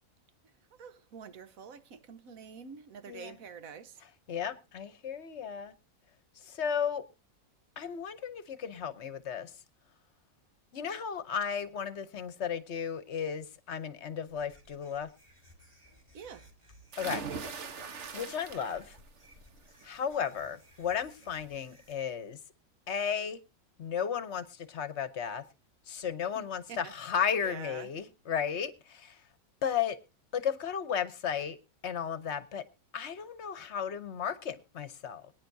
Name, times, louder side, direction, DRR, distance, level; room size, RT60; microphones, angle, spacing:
voice 1, 0.8-4.0 16.1-16.5 26.3-26.9 27.4-27.9, right 6 dB, 90° right, 1.4 m, -47 dB
voice 2, 4.3-5.7 6.4-7.0 7.8-9.5 10.7-15.1 17.0-17.2 18.1-19.0 19.8-22.4 22.9-23.4 23.8-25.4 25.9-29.2 29.6-30.0 30.3-31.6 31.8-32.6 32.9-35.3, left 7 dB, 60° left, 1.0 m, -34 dB
sound 1, 14.3-21.9, equal, 20° right, 3.0 m, -59 dB
sound 2, 16.9-19.0 19.4-19.8 21.2-21.3 21.7-21.8, right 5 dB, 60° right, 1.4 m, -40 dB
23.0 x 9.4 x 2.6 m
omnidirectional pair, 1.4 m